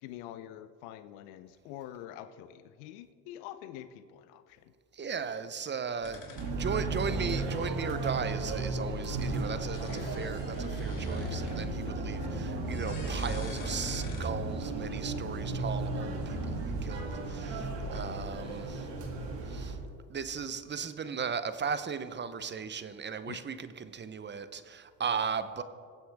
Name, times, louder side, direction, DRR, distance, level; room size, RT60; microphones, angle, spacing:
voice 1, 0.0-4.7 6.3-6.4 9.9-10.3 11.3-12.3 23.3-23.4, left 12 dB, 70° left, 11 dB, 0.7 m, -46 dB
voice 2, 4.9-6.2 6.5-18.9 19.4-19.8 20.1-25.6, right 6 dB, 25° right, 12 dB, 0.7 m, -37 dB
sound 1, 6.0-12.0 12.3-14.6, left 4 dB, 40° left, 2.2 m, -49 dB
sound 2, 6.4-19.7, right 2 dB, 60° right, 2.7 m, -34 dB
21.5 x 8.0 x 3.4 m, 2.2 s
supercardioid pair, 90°, 48 cm